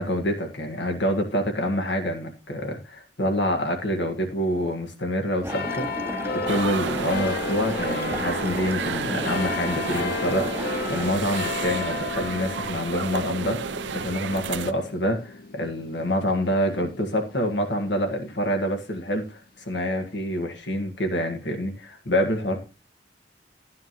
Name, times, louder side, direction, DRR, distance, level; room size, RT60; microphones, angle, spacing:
voice 1, 0.0-13.6 13.9-22.6, equal, 90° left, 4 dB, 1.7 m, -27 dB
sound 1, 5.4-11.1, right 1 dB, 15° right, 0.6 m, -34 dB
sound 2, 5.5-18.4 19.0-19.1, left 4 dB, 60° left, 0.6 m, -33 dB
sound 3, 6.5-14.7, right 6 dB, 90° right, 0.5 m, -32 dB
12.0 x 9.6 x 3.0 m, 0.32 s
head